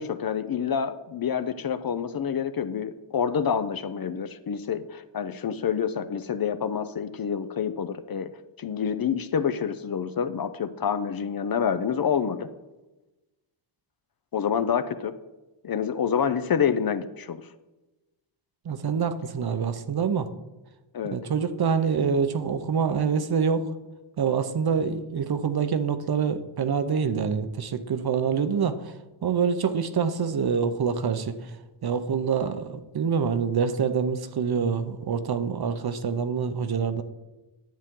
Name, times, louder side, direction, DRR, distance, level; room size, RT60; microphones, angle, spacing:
voice 1, 0.0-12.5 14.3-15.1 15.6-17.5 20.9-21.2, left 7 dB, 45° left, 11 dB, 0.5 m, -27 dB
voice 2, 18.6-20.3 21.1-23.6 24.2-28.9 29.2-31.5 31.8-37.0, right 6 dB, 50° right, 10 dB, 0.7 m, -26 dB
10.5 x 8.1 x 3.7 m, 1.1 s
wide cardioid pair, 105°, 50 cm